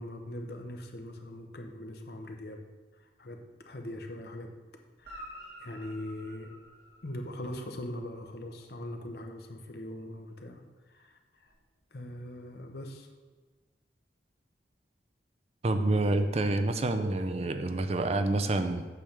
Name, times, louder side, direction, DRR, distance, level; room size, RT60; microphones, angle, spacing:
voice 1, 0.0-2.6 3.2-3.4 3.7-4.5 5.0-5.3 5.6-6.5 7.0-10.6 10.9-11.5 11.9-13.1, left 1 dB, 65° left, 4 dB, 0.9 m, -41 dB
Guitar, 5.0-7.6 11.4-11.5, equal, 60° right, 2.2 m, -49 dB
voice 2, 15.6-18.9, right 2 dB, 35° right, 8 dB, 0.5 m, -28 dB
8.4 x 3.5 x 6.7 m, 1.3 s
head